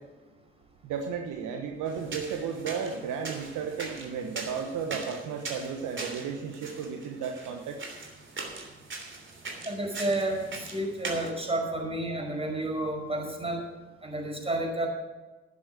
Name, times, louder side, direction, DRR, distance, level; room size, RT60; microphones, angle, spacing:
voice 1, 0.8-7.9, right 6 dB, 65° right, 4 dB, 1.2 m, -34 dB
sound 1, 1.8-11.3, right 3 dB, 35° right, 3.2 m, -41 dB
voice 2, 9.7-13.6 14.0-14.9, right 1 dB, 15° right, 1 dB, 5.3 m, -31 dB
12.0 x 9.9 x 6.3 m, 1.2 s
figure-of-eight pair, 40°, 33 cm